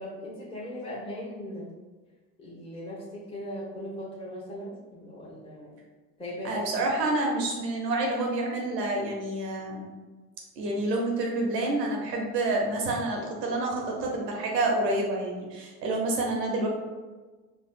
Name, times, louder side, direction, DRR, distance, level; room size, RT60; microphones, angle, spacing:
voice 1, 0.0-1.7 2.4-5.8 6.2-6.9, left 1 dB, 10° left, -6 dB, 0.9 m, -39 dB
voice 2, 6.4-9.9 10.6-16.7, right 2 dB, 90° right, 0 dB, 0.8 m, -28 dB
4.3 x 2.4 x 2.4 m, 1.3 s
hypercardioid pair, 55°, 48 cm